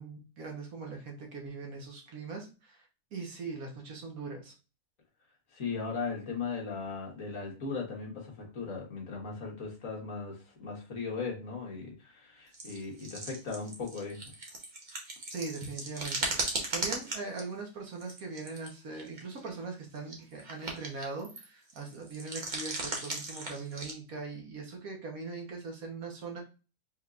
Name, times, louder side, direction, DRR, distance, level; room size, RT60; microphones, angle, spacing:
voice 1, 0.0-4.5 15.3-26.4, right 4 dB, 65° right, 1 dB, 1.5 m, -41 dB
voice 2, 5.5-14.2, left 4 dB, 60° left, -2 dB, 1.7 m, -38 dB
sound 1, 12.5-17.4 17.9-18.7 18.9-19.5 20.0-21.4 21.7-23.9, right 2 dB, 35° right, 1.0 m, -37 dB
4.5 x 3.8 x 2.4 m, 0.32 s
omnidirectional pair, 1.6 m